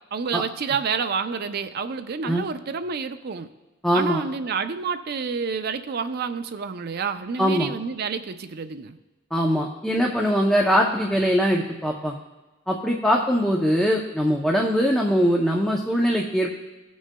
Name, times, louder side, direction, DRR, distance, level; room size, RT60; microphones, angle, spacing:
voice 1, 0.1-3.5 3.9-9.0, right 5 dB, 50° right, 9 dB, 0.4 m, -29 dB
voice 2, 3.8-4.2 7.4-7.7 9.3-12.1 12.7-16.5, equal, 5° left, -1 dB, 0.5 m, -22 dB
17.5 x 6.2 x 2.2 m, 1.2 s
head